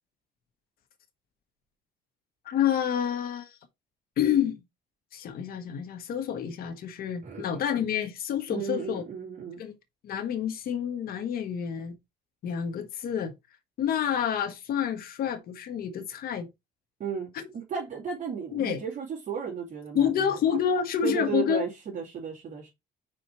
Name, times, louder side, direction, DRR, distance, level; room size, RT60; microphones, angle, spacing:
voice 1, 2.4-3.5 4.2-4.6 5.1-9.0 9.6-9.7 10.0-12.0 12.4-13.3 13.8-16.5 18.5-18.8 19.9-21.6, left 8 dB, 60° left, 1.3 m, -28 dB
voice 2, 8.5-9.6 17.0-20.6 21.0-22.7, right 6 dB, 45° right, 2.4 m, -34 dB
5.1 x 4.4 x 4.4 m
cardioid pair, 110°, 17 cm